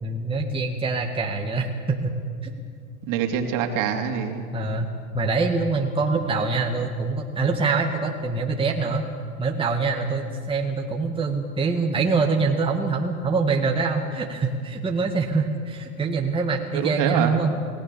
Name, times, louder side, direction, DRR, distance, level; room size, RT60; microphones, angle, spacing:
voice 1, 0.0-2.2 2.4-2.5 4.5-4.9 5.1-9.0 9.4-17.5, right 4 dB, 10° right, 1 dB, 1.9 m, -24 dB
voice 2, 3.1-4.5 16.7-17.3, right 8 dB, 45° right, 4 dB, 3.1 m, -25 dB
30.0 x 19.0 x 7.0 m, 2.2 s
hypercardioid pair, 110°, 46 cm